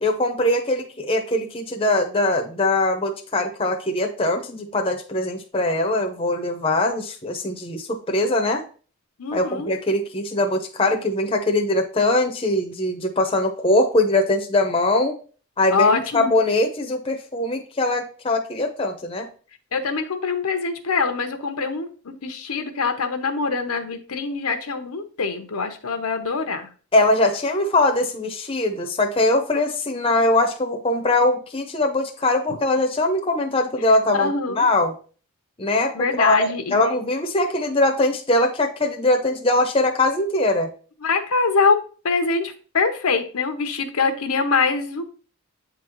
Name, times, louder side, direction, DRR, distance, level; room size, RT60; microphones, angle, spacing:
voice 1, 0.0-8.6 9.3-15.2 15.6-19.3 26.9-34.9 35.6-40.7, left 2 dB, 25° left, 4 dB, 0.7 m, -21 dB
voice 2, 9.2-9.8 15.7-16.3 19.7-26.7 34.1-34.7 35.9-36.9 41.0-41.8 42.0-45.1, left 4 dB, 85° left, 7 dB, 0.8 m, -23 dB
8.3 x 3.8 x 3.0 m, 0.39 s
head